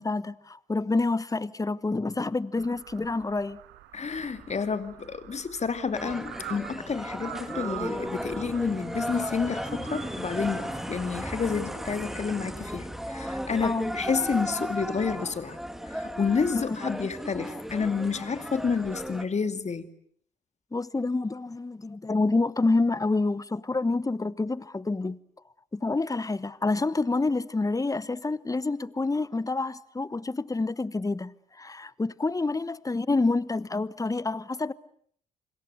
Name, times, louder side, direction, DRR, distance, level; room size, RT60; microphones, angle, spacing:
voice 1, 0.0-3.6 13.6-14.0 16.5-16.8 20.7-25.2 25.7-34.7, left 3 dB, 15° left, 1.1 m, -28 dB
sound 1, 2.5-12.5, right 13 dB, 65° right, 1.7 m, -45 dB
voice 2, 3.9-15.6 15.9-19.9, left 5 dB, 35° left, 2.6 m, -30 dB
sound 2, 5.9-19.2, equal, ahead, 2.7 m, -35 dB
27.5 x 26.5 x 7.9 m
figure-of-eight pair, 45°, 20 cm